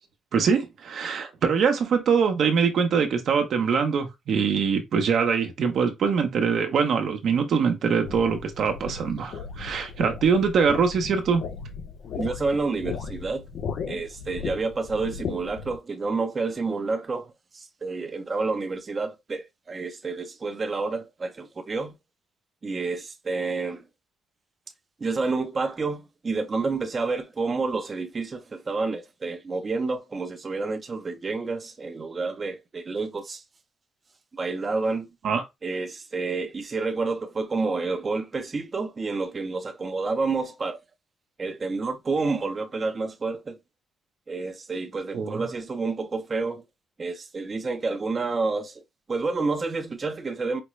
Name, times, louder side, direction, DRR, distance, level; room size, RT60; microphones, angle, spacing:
voice 1, 0.3-11.4 35.2-35.4 45.1-45.4, right 6 dB, 65° right, 0.9 m, -23 dB
sound 1, 8.0-15.8, left 6 dB, 70° left, 0.6 m, -36 dB
voice 2, 12.2-13.4 13.9-21.9 22.6-23.8 25.0-33.4 34.3-35.1 35.6-40.8 41.4-43.6 44.3-46.6 47.0-48.8 49.1-50.6, right 3 dB, 35° right, 0.7 m, -29 dB
5.0 x 2.2 x 3.1 m
cardioid pair, 90°, 0 cm